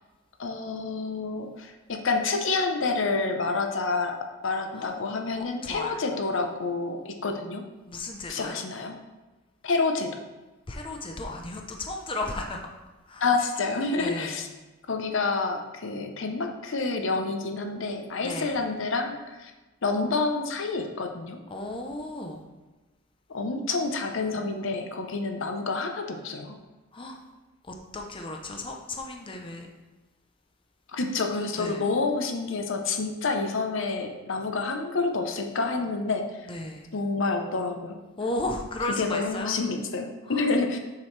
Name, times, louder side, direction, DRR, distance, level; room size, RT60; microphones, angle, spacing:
voice 1, 0.4-4.2 4.4-7.6 8.3-9.0 9.6-10.2 13.2-14.5 14.9-19.5 19.8-21.4 23.3-26.6 30.9-36.5 36.9-38.0 38.9-40.8, left 3 dB, 65° left, 5 dB, 0.7 m, -28 dB
voice 2, 5.4-6.0 7.9-8.6 10.7-12.6 13.1-13.2 13.9-14.4 18.2-18.6 21.5-22.4 26.9-27.2 27.6-29.7 31.6-31.8 36.5-36.9 38.2-39.6 40.3-40.5, left 2 dB, 25° left, 2 dB, 0.6 m, -34 dB
7.3 x 6.0 x 3.3 m, 1.1 s
head